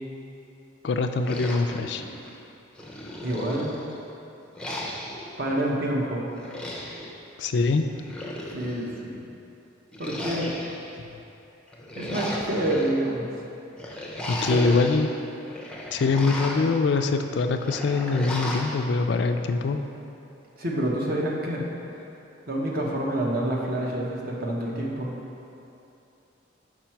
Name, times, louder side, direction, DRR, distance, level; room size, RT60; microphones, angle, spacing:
voice 1, 0.8-2.0 7.4-7.9 14.3-15.1 15.9-19.9, left 4 dB, 60° left, 7 dB, 0.3 m, -23 dB
sound 1, 1.2-2.4 2.8-4.0 4.6-5.3 6.3-7.1 7.9-8.9 9.9-10.9 11.7-12.9 13.8-15.0 15.4-16.8 17.6-18.8, left 1 dB, 5° left, 0.5 m, -35 dB
voice 2, 3.2-3.7 5.4-6.3 8.5-9.2 10.0-10.5 11.9-13.4 14.5-14.6 20.6-21.6 22.5-25.1, right 1 dB, 50° right, -2 dB, 0.8 m, -27 dB
5.8 x 4.7 x 4.5 m, 2.8 s
head